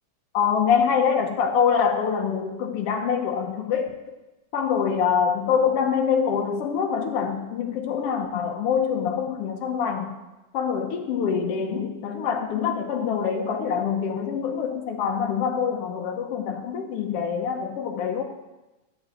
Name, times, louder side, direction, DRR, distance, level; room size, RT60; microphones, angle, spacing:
voice 1, 0.3-4.2 4.5-10.2 10.5-18.2, left 7 dB, 65° left, 2 dB, 1.7 m, -25 dB
12.0 x 5.9 x 7.8 m, 1.0 s
omnidirectional pair, 3.4 m